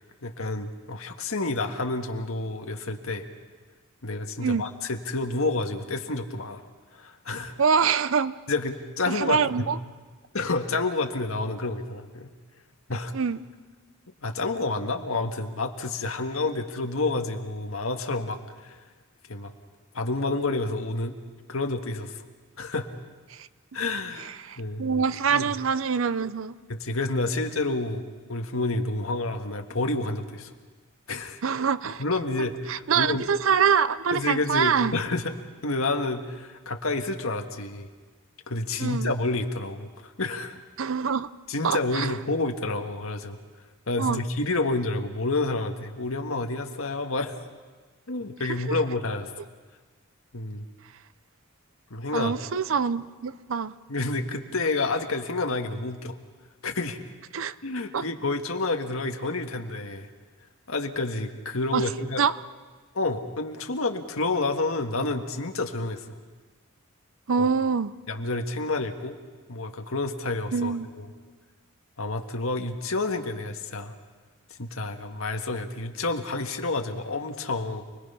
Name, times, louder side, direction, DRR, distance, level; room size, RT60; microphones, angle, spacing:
voice 1, 0.2-3.3 4.0-6.6 6.9-7.5 8.5-9.7 10.3-12.3 12.9-13.1 14.2-18.8 19.3-19.5 19.9-21.2 21.5-22.2 22.6-22.9 23.7-24.3 24.6-25.0 25.3-25.5 26.7-30.5 31.1-31.4 32.0-33.3 34.1-35.3 35.6-37.9 38.5-40.6 41.5-43.4 43.9-47.3 48.1-49.3 50.3-50.6 51.9-52.3 53.9-56.2 56.6-57.0 57.6-60.1 60.7-62.2 62.9-66.2 67.4-67.5 68.1-69.2 69.5-71.1 72.0-73.9 74.6-77.8, left 2 dB, 75° left, 5 dB, 1.6 m, -29 dB
voice 2, 7.6-8.3 9.1-9.8 13.1-13.4 23.3-23.5 24.2-26.6 31.4-32.0 32.7-35.0 38.8-39.1 40.8-41.3 41.6-42.2 44.0-44.2 48.7-48.8 52.1-53.7 57.3-57.6 57.9-58.0 61.7-61.8 62.2-62.3 67.3-68.0 70.5-70.9, right 6 dB, 65° right, 16 dB, 0.6 m, -25 dB
29.0 x 21.0 x 5.7 m, 1.4 s
head